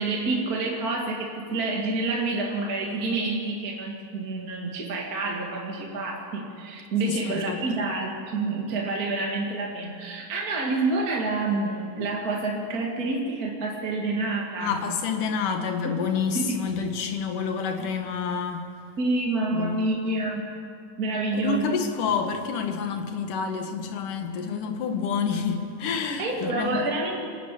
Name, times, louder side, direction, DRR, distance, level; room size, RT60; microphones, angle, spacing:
voice 1, 0.0-14.8 15.8-15.9 16.3-16.6 19.0-20.4 21.0-21.6 26.2-27.2, right 3 dB, 35° right, -1 dB, 2.1 m, -28 dB
voice 2, 7.0-7.6 14.6-18.7 19.5-19.8 21.3-26.8, left 6 dB, 90° left, 5 dB, 3.1 m, -28 dB
26.5 x 12.0 x 8.3 m, 2.3 s
omnidirectional pair, 3.6 m